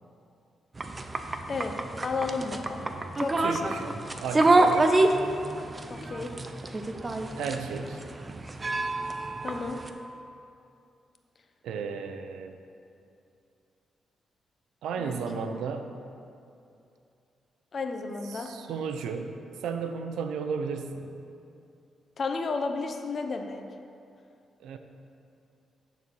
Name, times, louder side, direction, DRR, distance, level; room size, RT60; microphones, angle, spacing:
sound 1, 0.8-9.9, right 2 dB, 30° right, 0.6 m, -27 dB
voice 1, 2.0-3.9 5.9-6.3 9.4-9.8 15.0-15.2 17.7-18.5 22.2-23.6, left 4 dB, 50° left, 5 dB, 0.7 m, -33 dB
voice 2, 3.4-3.9 4.2-4.9 5.6-5.7 7.4-8.1 11.6-12.6 14.8-15.9 18.3-21.1 24.6-24.8, right 5 dB, 90° right, 7 dB, 0.5 m, -34 dB
9.6 x 4.2 x 6.2 m, 2.6 s
cardioid pair, 80°, 0 cm